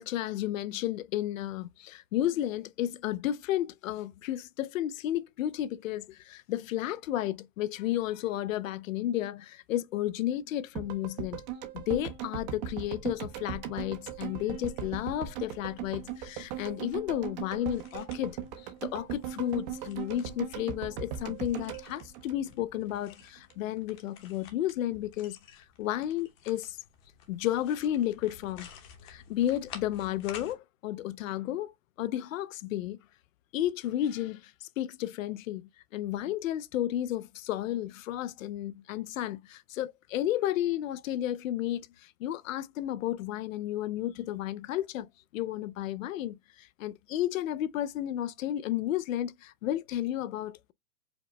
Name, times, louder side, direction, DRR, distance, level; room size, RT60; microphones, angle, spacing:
voice 1, 0.0-11.4 11.7-26.8 27.3-28.7 29.0-31.7 32.0-33.0 33.5-35.6 35.9-45.1 45.3-50.7, left 12 dB, 65° left, 0.5 m, -32 dB
sound 1, 10.8-22.9 23.2-23.3, right 9 dB, 30° right, 0.6 m, -39 dB
sound 2, 17.7-30.5, left 8 dB, 25° left, 0.8 m, -52 dB
4.9 x 2.1 x 2.9 m
hypercardioid pair, 150°, 42 cm